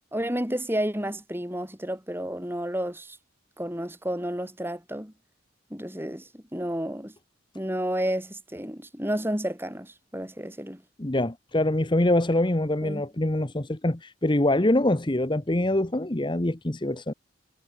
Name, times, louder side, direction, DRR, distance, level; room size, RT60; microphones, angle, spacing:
voice 1, 0.1-3.2 3.6-5.1 5.7-7.1 7.5-10.8 12.8-13.0, right 1 dB, 10° right, 5.7 m, -31 dB
voice 2, 11.0-17.1, left 1 dB, 25° left, 1.0 m, -24 dB
head